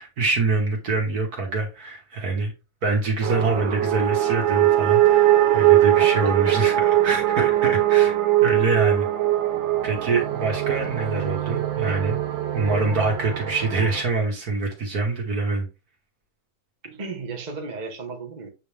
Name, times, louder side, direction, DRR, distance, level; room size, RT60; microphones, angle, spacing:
voice 1, 0.0-2.5 2.8-6.7 7.0-8.2 8.4-9.1 9.8-15.7, right 3 dB, 45° right, 2.2 m, -25 dB
sound 1, 3.2-14.0, right 13 dB, 70° right, 1.6 m, -21 dB
voice 2, 6.0-6.6 11.9-12.0 16.8-18.5, right 4 dB, 30° right, 1.0 m, -35 dB
8.6 x 3.5 x 3.5 m
omnidirectional pair, 2.3 m